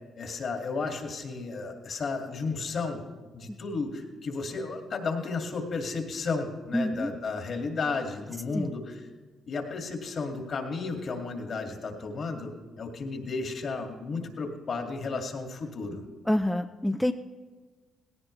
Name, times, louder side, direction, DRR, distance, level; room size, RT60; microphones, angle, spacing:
voice 1, 0.2-3.0 3.3-9.0 9.5-12.5 12.8-16.1, left 4 dB, 55° left, 3 dB, 2.3 m, -33 dB
voice 2, 6.7-7.1 8.5-8.7 16.3-17.1, left 1 dB, 5° left, 7 dB, 0.5 m, -27 dB
18.5 x 16.5 x 3.3 m, 1.4 s
supercardioid pair, 60°, 0 cm